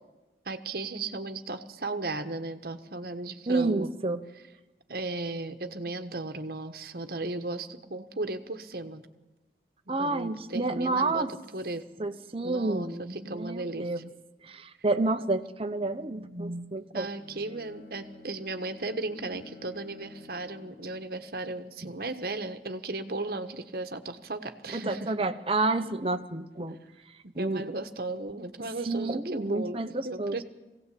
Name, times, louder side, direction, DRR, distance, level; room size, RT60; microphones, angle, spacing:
voice 1, 0.4-3.9 4.9-9.1 9.9-11.3 11.5-11.8 12.4-14.0 16.9-25.1 27.2-30.4, right 2 dB, 55° right, 8 dB, 1.3 m, -36 dB
voice 2, 3.5-4.2 9.9-11.3 12.0-14.0 14.4-17.1 24.7-26.8 27.3-27.7 28.9-30.4, right 2 dB, 30° right, 8 dB, 0.9 m, -29 dB
Bowed string instrument, 17.1-21.3, left 3 dB, 85° left, 2.7 m, -51 dB
21.5 x 17.0 x 8.5 m, 1.1 s
head